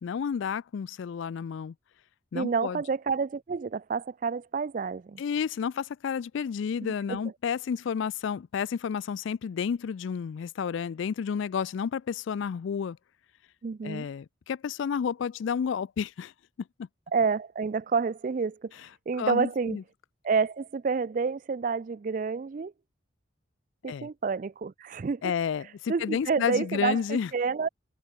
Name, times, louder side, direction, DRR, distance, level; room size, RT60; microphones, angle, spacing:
voice 1, 0.0-1.7 2.3-2.8 5.2-13.0 13.8-16.3 16.8-16.9 19.2-19.8 23.9-24.1 25.2-27.3, left 7 dB, 70° left, 0.3 m, -31 dB
voice 2, 2.3-5.2 6.8-7.2 13.6-14.1 17.1-18.7 19.1-19.8 20.2-22.7 23.8-25.3 25.9-27.7, right 5 dB, 40° right, 0.3 m, -29 dB
head